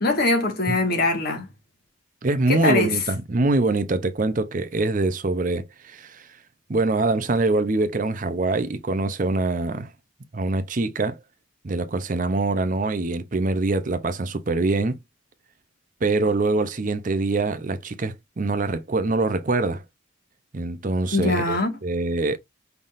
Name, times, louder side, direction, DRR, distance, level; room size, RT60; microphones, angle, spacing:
voice 1, 0.0-1.5 2.5-3.0 21.1-21.8, left 2 dB, 50° left, 1.7 m, -22 dB
voice 2, 2.2-6.4 6.7-9.9 10.3-11.2 11.6-15.0 16.0-19.8 20.5-22.4, right 2 dB, 40° right, 0.6 m, -24 dB
5.6 x 3.4 x 2.5 m
head